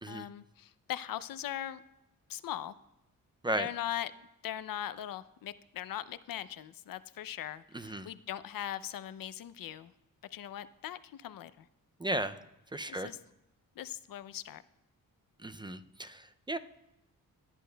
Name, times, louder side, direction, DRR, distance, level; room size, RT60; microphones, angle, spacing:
voice 1, 0.1-1.8 2.3-2.7 3.5-4.1 4.4-9.9 10.3-11.7 12.9-13.2 13.8-14.6, left 11 dB, 70° left, 15 dB, 0.5 m, -40 dB
voice 2, 7.7-8.1 12.0-12.4 12.7-13.1 15.4-16.6, right 1 dB, 15° right, 10 dB, 0.3 m, -35 dB
17.5 x 10.0 x 2.2 m, 0.91 s
wide cardioid pair, 120°, 35 cm